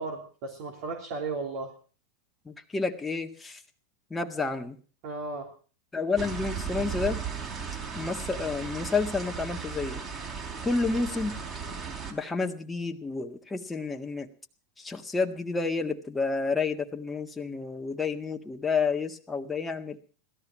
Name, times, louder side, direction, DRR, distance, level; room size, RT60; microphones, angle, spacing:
voice 1, 0.0-1.7 5.0-5.5, right 3 dB, 60° right, 1 dB, 3.3 m, -35 dB
voice 2, 2.5-3.6 4.1-4.8 5.9-7.2 7.9-10.0 10.6-11.4 12.1-14.3 14.8-20.0, left 4 dB, 10° left, 5 dB, 1.7 m, -30 dB
sound 1, 6.2-12.1, right 6 dB, 30° right, 3.9 m, -36 dB
17.0 x 13.5 x 6.1 m, 0.40 s
hypercardioid pair, 105°, 0 cm